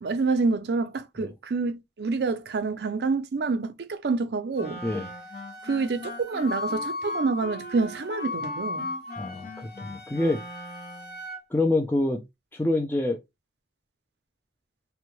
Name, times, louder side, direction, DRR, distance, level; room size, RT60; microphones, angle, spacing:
voice 1, 0.0-4.8 5.6-8.9, right 4 dB, 65° right, 0.4 m, -27 dB
Wind instrument woodwind instrument, 4.6-11.4, left 3 dB, 60° left, 1.1 m, -37 dB
Wind instrument woodwind instrument 2, 4.6-11.2, left 1 dB, 45° left, 0.7 m, -41 dB
voice 2, 9.2-9.5 9.8-10.4 11.5-12.2 12.5-13.2, left 2 dB, 10° left, 0.4 m, -25 dB
3.4 x 2.1 x 3.0 m
head